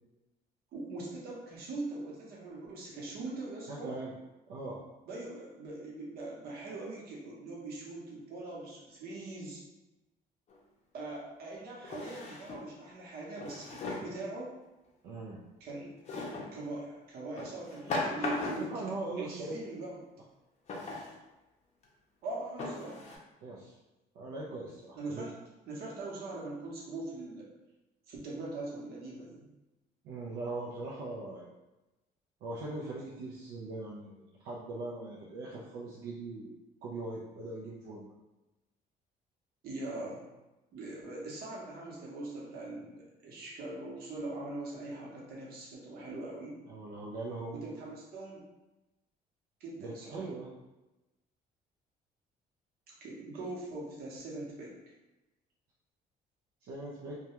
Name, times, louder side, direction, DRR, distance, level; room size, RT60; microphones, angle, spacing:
voice 1, 0.7-3.9 5.1-9.6 10.9-14.6 15.6-15.9 16.5-18.8 19.2-20.0 22.2-23.0 24.9-25.3 25.7-27.5 28.1-29.5 39.6-40.2 40.7-46.5 47.6-48.4 49.6-50.3 52.9-54.7, right 2 dB, 65° right, -4 dB, 0.8 m, -41 dB
voice 2, 3.7-4.2 4.5-4.8 15.0-15.4 18.6-19.3 23.4-23.7 24.1-25.3 30.0-31.5 32.4-36.5 36.8-38.1 46.7-47.8 49.8-50.5 56.6-57.2, right 2 dB, 80° right, -5 dB, 0.4 m, -40 dB
Drawer open or close, 10.5-10.6 11.8-12.7 13.4-14.2 16.1-16.5 17.4-18.8 20.7-21.1 21.8-21.9 22.6-23.2, left 2 dB, 40° left, 0.5 m, -37 dB
2.2 x 2.2 x 2.9 m, 1.0 s
cardioid pair, 110°, 17 cm